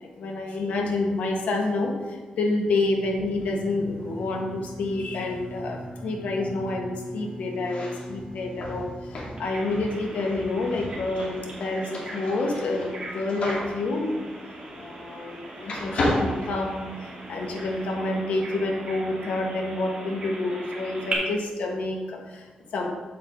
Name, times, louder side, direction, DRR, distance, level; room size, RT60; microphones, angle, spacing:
voice 1, 0.0-14.2 14.8-22.9, left 2 dB, 85° left, 2 dB, 1.3 m, -28 dB
Bowed string instrument, 3.9-10.0, right 1 dB, 50° right, 2.2 m, -42 dB
sound 1, 7.5-15.4 15.6-17.3, left 1 dB, 60° left, 2.0 m, -33 dB
Bird vocalization bird call bird song, 9.4-21.1, right 2 dB, 35° right, 2.6 m, -39 dB
7.9 x 7.5 x 3.7 m, 1.3 s
cardioid pair, 110°, 2 cm